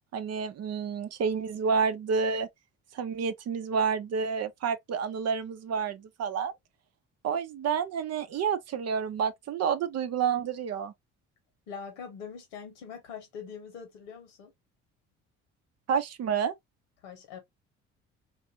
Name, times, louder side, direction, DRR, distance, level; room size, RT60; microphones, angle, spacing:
voice 1, 0.1-2.5 2.9-6.5 7.2-10.9 15.9-16.5, right 6 dB, 45° right, 0.6 m, -29 dB
voice 2, 11.7-14.5 17.0-17.4, left 6 dB, 80° left, 1.2 m, -43 dB
2.6 x 2.6 x 2.7 m
hypercardioid pair, 55°, 35 cm